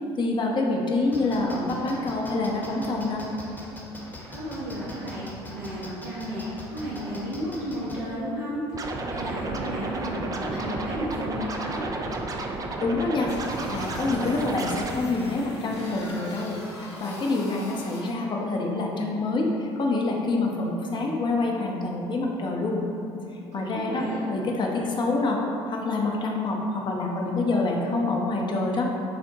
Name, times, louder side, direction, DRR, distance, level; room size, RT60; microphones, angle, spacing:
voice 1, 0.2-3.3 12.8-13.3 13.7-22.8 23.5-24.0 24.3-25.4 25.7-28.9, left 2 dB, 35° left, 0 dB, 0.6 m, -26 dB
sound 1, 1.1-8.0, left 1 dB, 15° left, 1.0 m, -41 dB
voice 2, 4.3-12.0 23.5-24.4, equal, 60° right, -9 dB, 0.8 m, -33 dB
Scratching (performance technique), 8.7-14.9, right 2 dB, 25° right, 0.4 m, -32 dB
sound 2, 13.3-18.1, left 1 dB, 85° left, 0.7 m, -41 dB
6.4 x 2.1 x 2.7 m, 2.7 s
figure-of-eight pair, 60°, 14 cm